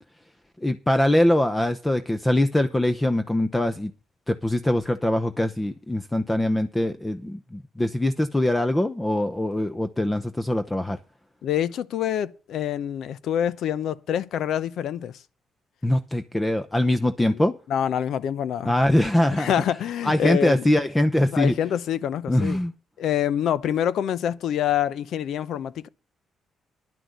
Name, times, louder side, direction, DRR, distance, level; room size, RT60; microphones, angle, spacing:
voice 1, 0.6-3.9 4.3-11.0 15.8-17.5 18.6-19.6 20.0-21.5 22.3-22.7, left 1 dB, 15° left, 0.8 m, -23 dB
voice 2, 11.4-15.2 17.7-18.7 19.4-20.7 21.3-22.6 23.0-25.9, left 10 dB, 75° left, 0.6 m, -26 dB
11.0 x 6.1 x 7.9 m
cardioid pair, 90°, 0 cm